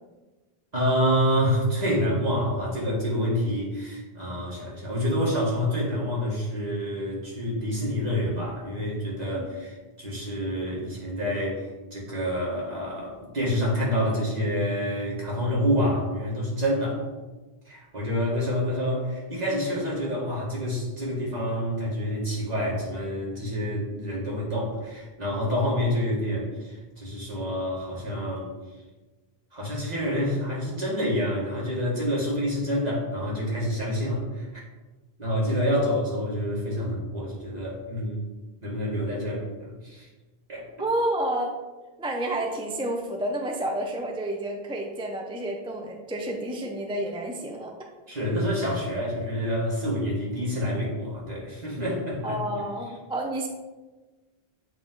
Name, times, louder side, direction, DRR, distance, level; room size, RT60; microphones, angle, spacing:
voice 1, 0.7-17.0 17.7-28.5 29.5-34.6 35.2-38.2 38.6-40.1 40.5-40.6 48.1-52.4, equal, 40° right, -5 dB, 1.8 m, -27 dB
voice 2, 40.8-41.5 42.0-47.7 52.2-53.5, right 1 dB, 10° right, 1 dB, 0.3 m, -30 dB
8.3 x 3.0 x 3.8 m, 1.2 s
omnidirectional pair, 1.1 m